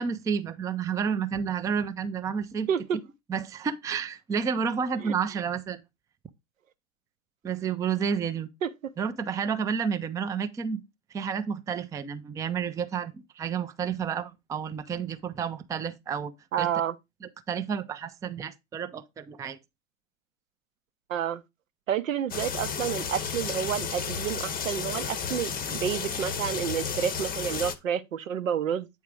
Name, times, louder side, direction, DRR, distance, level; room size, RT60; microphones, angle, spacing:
voice 1, 0.0-2.7 3.3-5.8 7.4-8.5 9.0-10.8 11.1-16.3 16.6-16.7 17.2-19.6, right 6 dB, 10° right, 0.4 m, -30 dB
voice 2, 16.5-16.9 21.1-21.4 21.9-28.9, right 9 dB, 85° right, 0.7 m, -29 dB
sound 1, 22.3-27.8, left 6 dB, 20° left, 0.7 m, -32 dB
8.3 x 3.6 x 4.6 m
hypercardioid pair, 85°, 39 cm